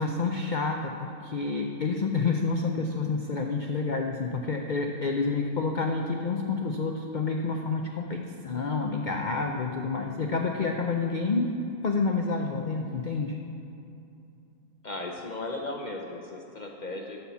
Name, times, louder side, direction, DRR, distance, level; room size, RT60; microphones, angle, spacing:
voice 1, 0.0-11.5 11.8-13.4, left 4 dB, 90° left, 2 dB, 0.4 m, -29 dB
voice 2, 14.8-17.2, left 2 dB, 45° left, 0 dB, 0.6 m, -36 dB
12.0 x 4.4 x 6.9 m, 2.7 s
omnidirectional pair, 1.6 m